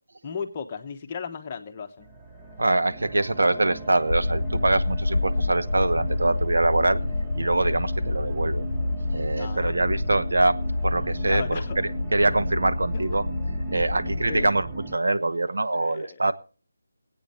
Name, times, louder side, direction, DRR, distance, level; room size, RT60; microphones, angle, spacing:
voice 1, 0.2-2.1 9.3-9.7 11.3-11.7 13.8-14.0 14.3-14.5 15.7-16.3, left 6 dB, 20° left, 4 dB, 1.0 m, -35 dB
sound 1, 2.0-15.0, right 2 dB, 10° right, 0.7 m, -38 dB
voice 2, 2.6-7.0 7.3-8.7 9.1-13.2 13.7-16.3, right 2 dB, 85° right, 11 dB, 1.0 m, -24 dB
sound 2, 4.1-14.5, left 2 dB, 80° left, 0.6 m, -28 dB
22.0 x 8.6 x 4.3 m, 0.38 s
figure-of-eight pair, 175°, 0 cm